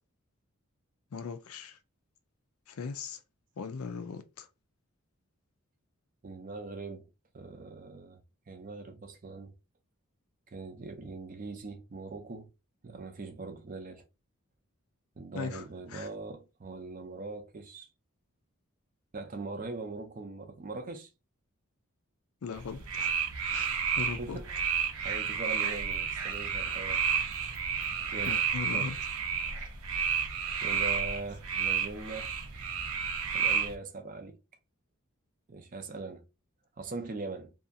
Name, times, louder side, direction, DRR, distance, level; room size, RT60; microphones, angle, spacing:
voice 1, 1.1-1.8 2.7-3.2 3.6-4.5 15.3-16.1 22.4-23.2 23.5-24.4 28.3-29.0, left 5 dB, 75° left, 0.4 m, -39 dB
voice 2, 6.2-7.1 7.3-9.5 10.5-12.5 12.8-14.0 15.2-17.9 19.1-21.1 23.7-24.5 25.0-27.1 28.1-28.4 28.7-28.9 30.6-32.3 33.3-34.4 35.5-36.2 36.8-37.5, right 3 dB, 35° right, 0.4 m, -41 dB
sound 1, 22.5-33.7, right 7 dB, 80° right, 0.6 m, -31 dB
2.7 x 2.4 x 2.5 m
head